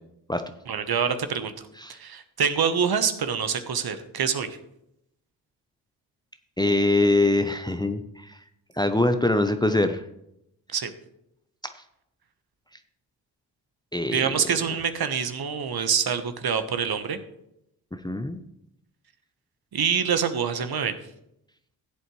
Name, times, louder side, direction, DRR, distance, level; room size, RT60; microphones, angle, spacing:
voice 1, 0.7-4.5 10.7-10.9 14.1-17.2 19.7-20.9, right 7 dB, 50° right, 10 dB, 1.2 m, -26 dB
voice 2, 6.6-8.4 8.8-10.0 13.9-14.3 18.0-18.4, left 2 dB, 10° left, 9 dB, 0.7 m, -23 dB
15.0 x 8.0 x 3.2 m, 0.81 s
hypercardioid pair, 45°, 48 cm